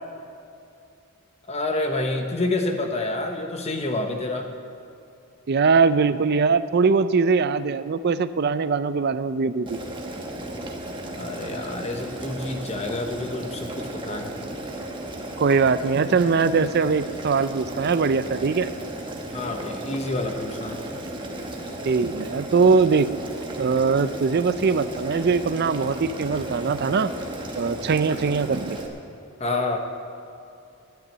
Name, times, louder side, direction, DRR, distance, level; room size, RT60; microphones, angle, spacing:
voice 1, 1.5-4.5 11.1-14.3 19.3-20.8 29.4-29.8, left 2 dB, 30° left, 4 dB, 1.0 m, -28 dB
voice 2, 5.5-9.8 15.4-18.7 21.9-23.1 23.6-27.1 27.6-28.8, right 4 dB, 45° right, 13 dB, 0.4 m, -21 dB
Boiling, 9.7-28.9, right 1 dB, 20° right, 1.2 m, -34 dB
10.5 x 9.6 x 8.6 m, 2.6 s
head